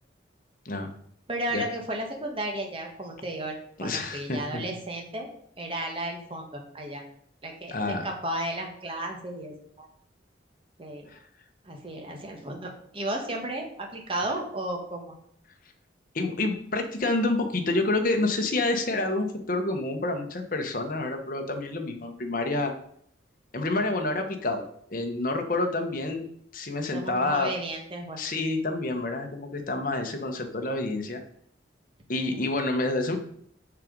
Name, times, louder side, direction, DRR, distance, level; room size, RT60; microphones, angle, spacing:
voice 1, 1.3-5.3 5.6-7.0 7.4-9.9 10.8-11.1 11.6-15.2 26.9-28.2 32.3-32.4, right 1 dB, 30° right, 2 dB, 1.5 m, -34 dB
voice 2, 3.8-4.6 7.7-8.1 11.1-11.2 16.1-22.7 23.5-26.2 26.5-27.5 28.2-31.2 32.1-33.2, left 2 dB, 45° left, 4 dB, 1.1 m, -28 dB
6.6 x 6.0 x 5.2 m, 0.66 s
head